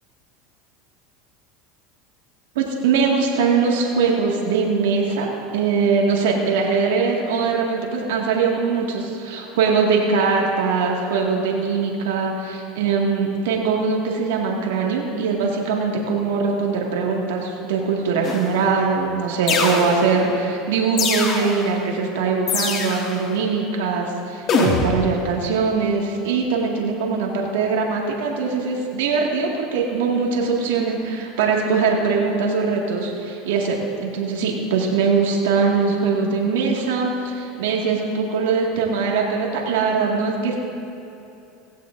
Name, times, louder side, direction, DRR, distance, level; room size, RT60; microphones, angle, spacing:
voice 1, 2.6-40.6, right 5 dB, 80° right, -1 dB, 2.0 m, -21 dB
sound 1, 18.2-18.7 19.5-20.3 21.0-21.7 22.5-23.2 24.5-25.2, left 4 dB, 45° left, 2.0 m, -23 dB
17.0 x 16.0 x 2.6 m, 2.9 s
supercardioid pair, 105°, 0 cm